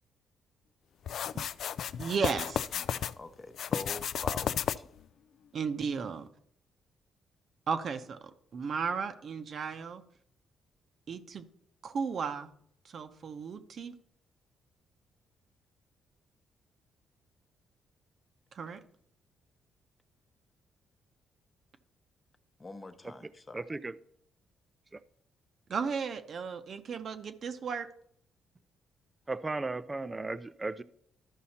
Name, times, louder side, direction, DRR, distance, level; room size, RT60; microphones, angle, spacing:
sound 1, 1.1-3.1 3.5-5.0, left 9 dB, 70° left, 0.3 m, -33 dB
voice 1, 2.0-2.7 5.5-6.3 7.7-8.2 8.5-10.0 11.1-11.4 11.8-12.5 12.8-13.9 18.5-18.8 25.7-27.9, right 5 dB, 55° right, 0.8 m, -34 dB
voice 2, 2.7-4.9 22.6-23.7, left 2 dB, 25° left, 0.8 m, -45 dB
voice 3, 23.5-23.9 24.9-25.0 29.3-30.8, right 3 dB, 20° right, 0.4 m, -35 dB
13.0 x 5.5 x 4.3 m
cardioid pair, 90°, 0 cm